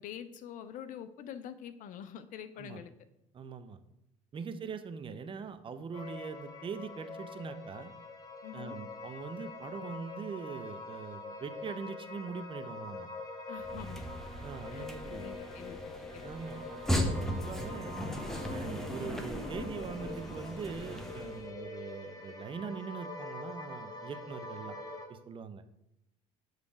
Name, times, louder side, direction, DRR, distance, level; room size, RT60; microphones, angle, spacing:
voice 1, 0.0-2.9 8.4-8.8 13.5-14.1 14.7-16.2, left 9 dB, 50° left, 11 dB, 0.5 m, -46 dB
voice 2, 3.3-3.8 4.3-7.9 8.5-13.1 14.4-15.3 16.2-17.9 18.5-24.7 25.1-25.6, right 5 dB, 30° right, 10 dB, 0.6 m, -42 dB
sound 1, 5.9-25.1, left 3 dB, 20° left, 1.4 m, -45 dB
sound 2, 13.6-21.5, equal, ahead, 0.9 m, -37 dB
6.9 x 3.2 x 4.8 m, 0.86 s
hypercardioid pair, 65°, 17 cm